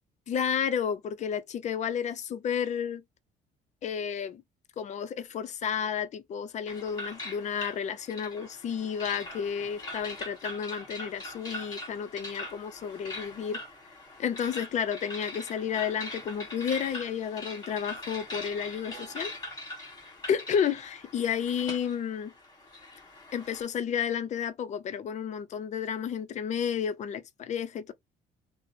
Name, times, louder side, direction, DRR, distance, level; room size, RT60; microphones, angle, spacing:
voice 1, 0.3-3.0 3.8-4.4 4.8-13.6 14.2-19.3 20.3-22.3 23.3-27.9, left 8 dB, 45° left, 0.5 m, -31 dB
sound 1, 6.7-23.6, left 1 dB, 25° left, 1.4 m, -42 dB
2.8 x 2.0 x 2.5 m
cardioid pair, 110°, 17 cm